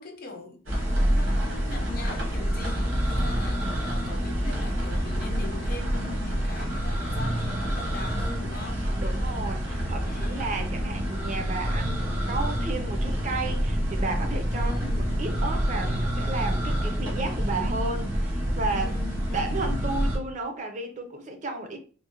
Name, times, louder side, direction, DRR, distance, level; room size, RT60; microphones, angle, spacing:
voice 1, 0.0-8.9 10.0-10.8 14.5-15.3 18.7-19.9, left 3 dB, 45° left, 0.5 m, -42 dB
sound 1, 0.7-20.2, equal, 70° right, 1.1 m, -27 dB
voice 2, 9.0-18.9 19.3-21.8, right 3 dB, 35° right, 0.5 m, -33 dB
3.7 x 2.1 x 2.8 m
head